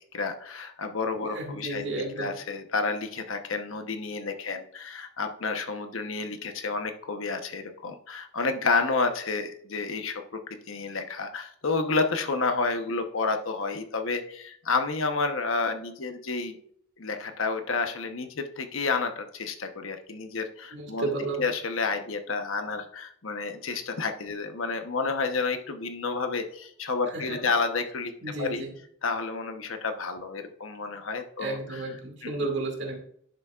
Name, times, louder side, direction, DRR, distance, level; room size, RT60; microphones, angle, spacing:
voice 1, 0.1-1.8 2.2-16.6 17.0-21.1 21.4-28.1 28.4-28.6 29.0-31.9 32.2-32.3, left 4 dB, 80° left, 6 dB, 1.0 m, -30 dB
voice 2, 1.3-2.3 20.7-21.4 27.1-27.4 28.2-28.7 31.4-33.0, right 2 dB, 55° right, 2 dB, 2.1 m, -32 dB
10.5 x 6.9 x 2.4 m, 0.64 s
head